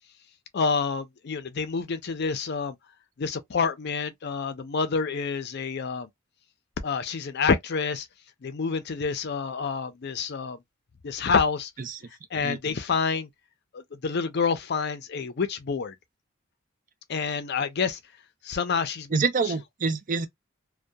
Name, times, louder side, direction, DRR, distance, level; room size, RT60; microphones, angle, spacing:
voice 1, 0.5-2.7 3.2-6.1 6.8-8.1 8.4-10.6 11.0-11.7 12.3-13.3 13.7-15.9 17.1-18.0 18.5-19.2, left 5 dB, 55° left, 0.5 m, -28 dB
voice 2, 19.1-20.3, right 4 dB, 45° right, 0.5 m, -26 dB
2.7 x 2.2 x 2.2 m
head